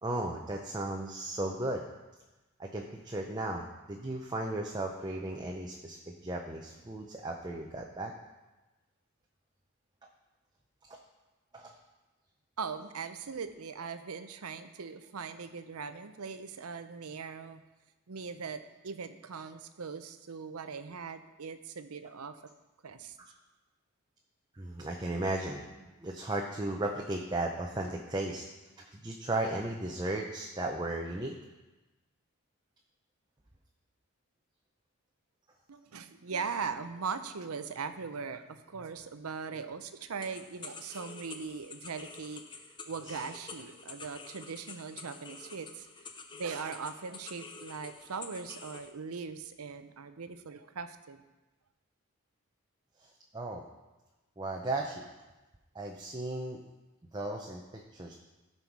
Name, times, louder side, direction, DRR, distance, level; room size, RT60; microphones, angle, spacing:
voice 1, 0.0-1.8 2.6-8.1 10.9-11.0 11.5-11.7 23.2-23.3 24.5-28.4 28.8-31.3 43.1-43.2 53.0-53.6 54.4-55.1 55.7-56.6 57.1-58.1, right 2 dB, 20° right, 0 dB, 0.6 m, -35 dB
voice 2, 12.6-17.6 18.1-22.4 22.8-23.2 35.7-45.9 46.3-51.2, right 5 dB, 85° right, 10 dB, 0.7 m, -40 dB
sound 1, 40.2-48.9, left 4 dB, 20° left, 0.5 m, -48 dB
15.0 x 5.5 x 4.7 m, 1.1 s
head